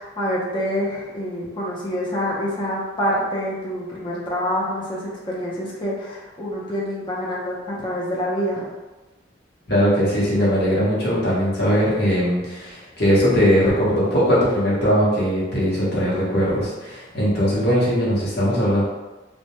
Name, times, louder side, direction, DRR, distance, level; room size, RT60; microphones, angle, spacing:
voice 1, 0.0-8.7, equal, 25° left, -6 dB, 0.6 m, -26 dB
voice 2, 9.7-18.8, equal, 55° left, -7 dB, 0.9 m, -20 dB
2.2 x 2.1 x 2.9 m, 1.2 s
head